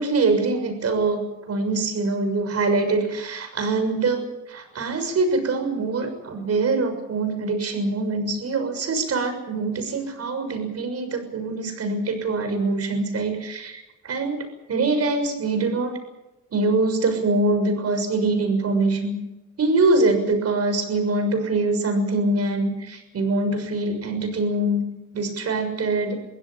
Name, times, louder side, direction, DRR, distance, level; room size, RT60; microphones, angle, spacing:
voice 1, 0.0-16.0 16.5-19.2 19.6-24.8 25.1-26.2, right 3 dB, 55° right, 7 dB, 6.7 m, -24 dB
22.5 x 16.0 x 9.0 m, 0.95 s
cardioid pair, 90°, 30 cm